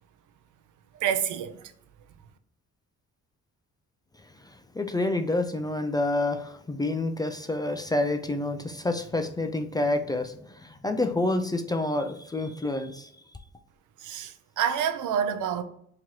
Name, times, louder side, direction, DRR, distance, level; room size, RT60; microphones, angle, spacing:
voice 1, 0.9-1.6 14.0-15.6, right 8 dB, 75° right, 0.5 m, -28 dB
voice 2, 4.7-13.1, left 2 dB, 15° left, 0.3 m, -28 dB
3.0 x 2.9 x 3.7 m
cardioid pair, 90°, 30 cm